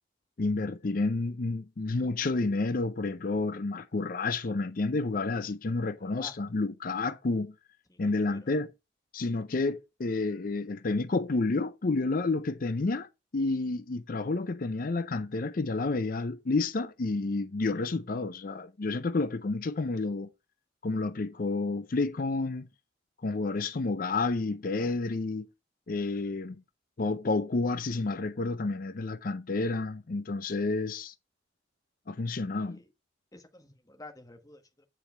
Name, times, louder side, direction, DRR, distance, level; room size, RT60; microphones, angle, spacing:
voice 1, 0.4-7.5 8.0-8.7 9.1-13.1 13.3-20.3 20.8-22.7 23.2-25.5 25.9-26.6 27.0-31.1 32.1-32.8, left 3 dB, 45° left, 0.5 m, -30 dB
voice 2, 7.9-8.4 24.8-25.0 32.6-32.9 33.3-34.8, left 2 dB, 20° left, 1.3 m, -50 dB
9.4 x 4.9 x 4.4 m
head